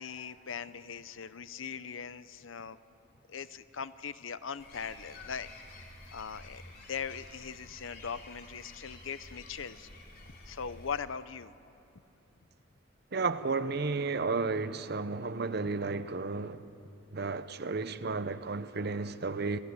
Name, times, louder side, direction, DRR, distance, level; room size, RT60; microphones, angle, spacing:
voice 1, 0.0-2.8 3.3-5.5 6.1-6.6 6.9-9.9 10.5-11.5, left 6 dB, 75° left, 0.8 m, -40 dB
sound 1, 4.6-11.0, left 2 dB, 50° left, 4.4 m, -50 dB
voice 2, 13.1-16.7 17.1-19.6, right 4 dB, 55° right, 0.8 m, -33 dB
27.0 x 17.0 x 9.8 m
head